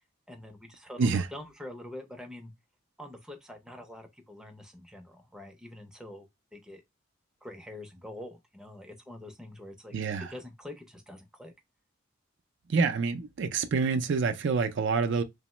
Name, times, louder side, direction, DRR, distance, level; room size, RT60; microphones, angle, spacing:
voice 1, 0.3-2.5 3.0-6.3 6.5-6.8 7.4-11.5, left 1 dB, 5° right, 0.5 m, -45 dB
voice 2, 9.9-10.3 12.7-15.2, right 5 dB, 60° right, 0.4 m, -27 dB
2.9 x 2.0 x 3.0 m
head